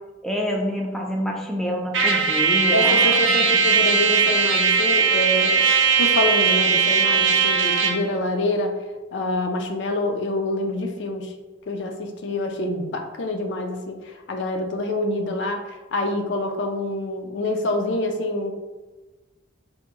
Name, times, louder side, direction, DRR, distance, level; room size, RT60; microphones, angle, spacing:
voice 1, 0.2-3.2, equal, ahead, -1 dB, 0.4 m, -27 dB
Trumpet, 1.9-8.1, right 5 dB, 85° right, 0.5 m, -19 dB
voice 2, 2.7-5.6 6.0-8.8 9.1-11.3 11.7-18.5, left 1 dB, 65° left, 4 dB, 0.4 m, -26 dB
3.5 x 2.5 x 3.0 m, 1.2 s
head